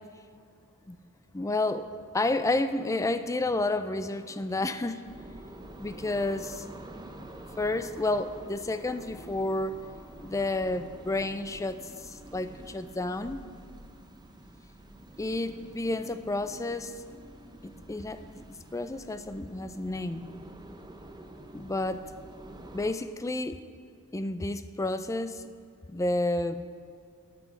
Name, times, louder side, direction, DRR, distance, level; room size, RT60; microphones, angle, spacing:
voice 1, 1.3-1.9 2.1-5.1 5.8-6.7 7.6-11.8 12.0-13.4 15.2-16.9 17.9-20.2 21.5-22.0 22.7-23.6 24.1-25.4 25.9-26.7, left 2 dB, 15° left, 10 dB, 0.4 m, -30 dB
sound 1, 5.0-22.9, right 1 dB, 20° right, 0.7 m, -47 dB
17.5 x 6.0 x 5.1 m, 2.4 s
head